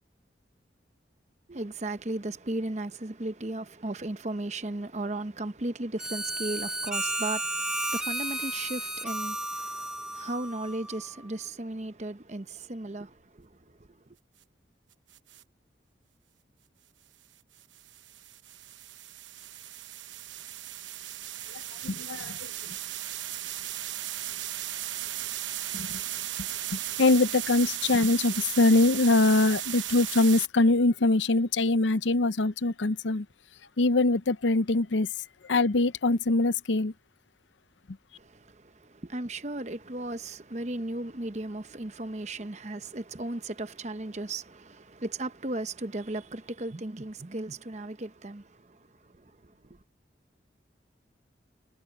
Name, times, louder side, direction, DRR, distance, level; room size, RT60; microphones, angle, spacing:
voice 1, 1.5-13.8 38.2-49.5, right 2 dB, 35° right, 0.9 m, -36 dB
Harmonica, 6.0-11.2, right 1 dB, 5° right, 1.3 m, -33 dB
sound 1, 15.1-15.4 17.6-30.5, right 13 dB, 85° right, 1.0 m, -36 dB
voice 2, 21.5-22.8 25.7-26.0 26.7-33.3 33.8-35.1 35.5-36.9, left 2 dB, 80° left, 0.7 m, -24 dB
head